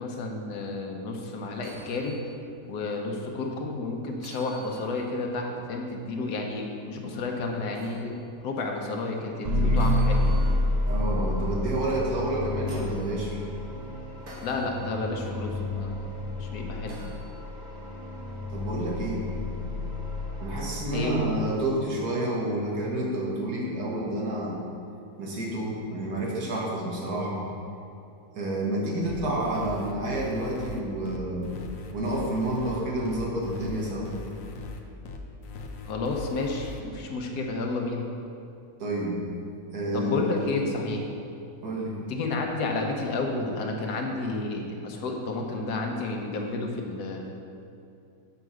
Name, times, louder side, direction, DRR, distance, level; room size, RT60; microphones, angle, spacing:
voice 1, 0.0-2.2 2.7-8.1 8.4-10.3 14.4-17.0 20.9-21.2 35.9-38.1 39.9-41.1 42.1-47.3, left 3 dB, 85° left, 1 dB, 1.4 m, -31 dB
sound 1, 1.5-2.2 2.7-2.8 4.2-5.2 7.7-8.0 9.8-10.7 12.2-13.1 14.3-14.7 16.9-17.2 19.0-19.2, right 2 dB, 60° right, 1.8 m, -48 dB
sound 2, 9.4-21.6, left 1 dB, 30° right, 1.1 m, -29 dB
voice 2, 10.9-13.4 18.5-19.3 20.4-24.6 25.2-27.4 28.4-31.6 31.9-34.1 38.8-39.2 39.7-40.2 41.6-42.0, right 1 dB, 85° right, -3 dB, 1.9 m, -29 dB
sound 3, 29.1-36.8, left 3 dB, 65° left, 1.0 m, -40 dB
6.7 x 4.7 x 6.2 m, 2.5 s
omnidirectional pair, 1.6 m